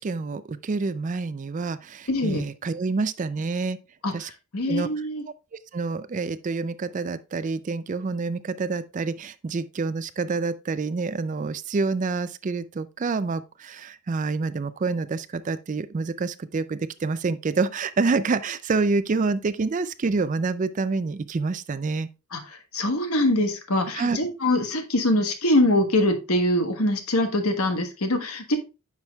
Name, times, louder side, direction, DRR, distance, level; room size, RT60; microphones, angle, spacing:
voice 1, 0.0-3.8 4.1-4.3 4.7-5.1 5.7-22.1 24.0-24.2, right 4 dB, 35° right, 0.4 m, -27 dB
voice 2, 2.1-2.4 4.0-4.1 4.5-5.2 22.3-22.4 22.7-28.6, left 1 dB, 80° left, 1.3 m, -23 dB
9.8 x 6.0 x 2.3 m
head